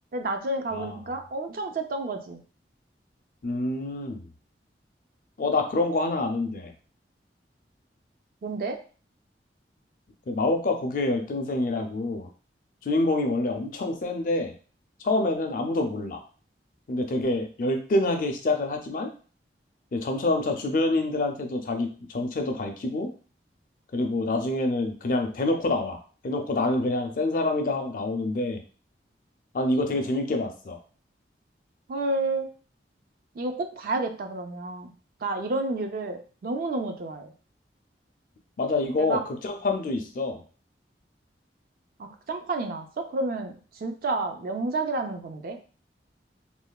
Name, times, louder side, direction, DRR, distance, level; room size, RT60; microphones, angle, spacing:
voice 1, 0.1-2.4 8.4-8.8 31.9-32.5 33.4-34.9 35.2-37.3 38.9-39.2 42.0-45.6, right 2 dB, 50° right, 5 dB, 0.4 m, -30 dB
voice 2, 3.4-4.3 5.4-6.7 10.3-12.3 12.8-14.5 15.0-16.2 16.9-19.1 19.9-23.1 23.9-26.0 26.2-28.6 29.5-30.8 38.6-40.4, left 2 dB, 50° left, 5 dB, 0.4 m, -26 dB
3.1 x 2.1 x 2.2 m, 0.39 s
head